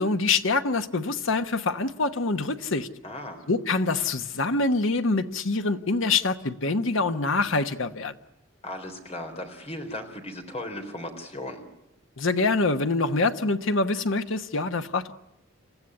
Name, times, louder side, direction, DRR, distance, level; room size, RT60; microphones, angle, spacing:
voice 1, 0.0-2.9 3.5-8.2 12.2-15.1, left 3 dB, 75° left, 1.1 m, -25 dB
voice 2, 3.0-3.5 8.6-11.6, left 1 dB, 30° left, 3.7 m, -36 dB
28.0 x 14.5 x 9.8 m
head